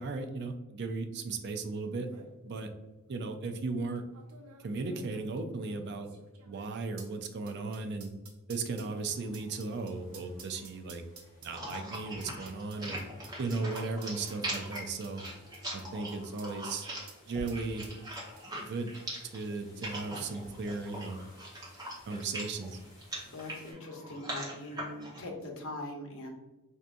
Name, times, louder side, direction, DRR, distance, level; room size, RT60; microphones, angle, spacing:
voice 1, 0.0-2.1 2.4-2.7 3.1-4.0 4.6-6.1 6.5-8.1 8.5-11.0 11.4-13.0 13.4-15.2 15.7-16.9 17.3-17.9 18.7-18.9 19.3-21.2 22.1-22.8, right 3 dB, 50° right, 7 dB, 0.4 m, -36 dB
sound 1, 1.6-1.7 1.9-2.3 3.1-3.2 4.1-16.8 17.1-17.2 17.5-18.7 18.9-19.0, right 5 dB, 90° right, 0.7 m, -54 dB
sound 2, 8.9-23.7, left 1 dB, 35° left, 1.4 m, -60 dB
sound 3, 11.5-25.2, right 1 dB, 20° right, 1.0 m, -41 dB
voice 2, 23.3-26.3, left 1 dB, 65° left, 1 dB, 0.8 m, -42 dB
4.5 x 2.7 x 2.5 m, 1.1 s
head